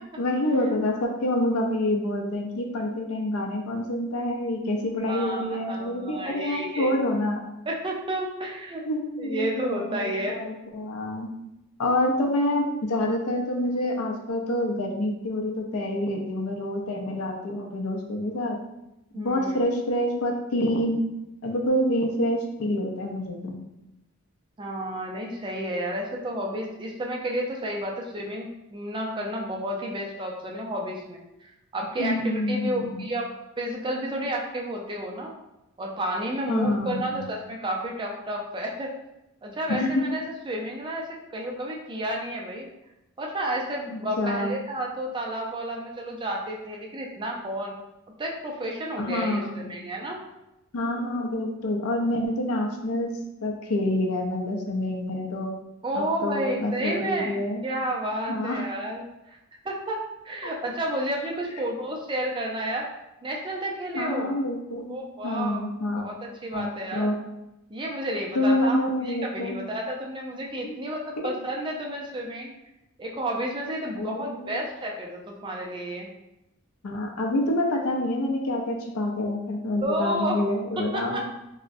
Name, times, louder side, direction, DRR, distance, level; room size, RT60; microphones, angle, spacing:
voice 1, 0.2-7.4 8.9-11.3 11.8-18.6 19.1-21.0 21.4-23.6 32.0-33.1 36.5-37.2 39.7-40.0 43.9-44.5 49.0-49.8 50.7-53.1 53.4-55.5 56.0-57.6 58.3-58.6 63.9-64.9 65.2-66.1 66.5-67.1 68.3-69.6 70.6-70.8 74.0-74.6 76.8-81.2, left 1 dB, 90° left, 1 dB, 0.5 m, -27 dB
voice 2, 5.1-6.9 7.7-8.8 9.2-10.4 19.1-19.6 24.6-31.2 31.7-33.3 33.6-35.3 35.8-38.9 39.4-42.7 43.2-47.7 48.2-50.2 55.8-59.4 59.6-60.0 60.2-62.9 63.2-64.3 64.9-65.7 65.9-67.1 67.7-72.5 73.0-76.1 79.8-80.4 80.8-81.2, right 1 dB, 20° right, -1 dB, 0.4 m, -31 dB
3.7 x 2.1 x 2.5 m, 0.91 s
head